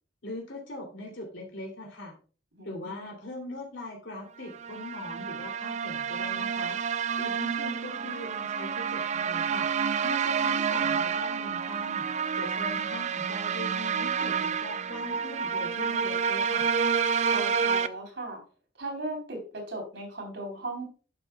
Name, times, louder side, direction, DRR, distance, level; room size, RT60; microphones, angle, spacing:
voice 1, 0.2-2.1 2.6-6.8 7.2-9.7 10.0-12.1 12.4-16.7, left 1 dB, 80° left, 1 dB, 2.9 m, -41 dB
voice 2, 2.5-3.0 17.2-18.4 18.8-20.8, right 2 dB, 65° right, 2 dB, 3.9 m, -37 dB
sound 1, 4.5-17.9, right 6 dB, 40° right, 0.4 m, -29 dB
11.0 x 7.6 x 2.3 m, 0.38 s
head